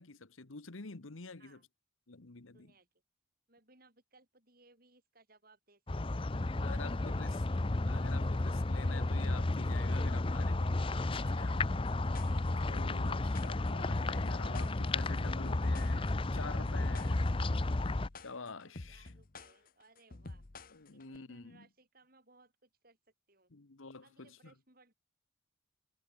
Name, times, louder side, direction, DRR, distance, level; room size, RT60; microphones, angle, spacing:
voice 1, 0.0-1.6 2.1-2.7 6.6-7.4 7.8-11.5 12.7-17.3 18.2-19.1 20.7-21.7 23.5-24.5, left 4 dB, 80° left, 1.3 m, -48 dB
voice 2, 2.5-2.9 3.5-5.8 6.7-7.6 11.0-11.8 18.7-20.5 20.9-23.0 23.3-23.5 24.0-24.9, right 3 dB, 45° right, 6.8 m, -65 dB
sound 1, 5.9-18.1, left 2 dB, 25° left, 0.6 m, -32 dB
sound 2, 11.6-21.2, left 2 dB, 45° left, 1.0 m, -49 dB
head